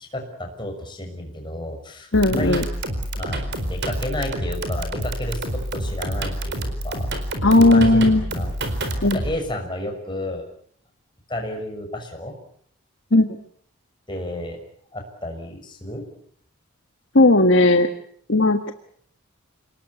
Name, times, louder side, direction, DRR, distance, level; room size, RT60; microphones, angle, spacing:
voice 1, 0.1-2.6 3.1-7.1 7.6-8.6 9.1-10.4 11.3-12.3 14.1-14.6 14.9-16.0, left 1 dB, 20° left, 3 dB, 6.0 m, -31 dB
voice 2, 2.1-2.6 7.4-8.2 9.0-9.2 13.1-13.3 17.1-17.9 18.3-18.7, left 2 dB, 55° left, 6 dB, 1.5 m, -16 dB
sound 1, 2.1-9.4, right 1 dB, 50° right, 4.4 m, -28 dB
28.5 x 19.5 x 8.5 m, 0.63 s
head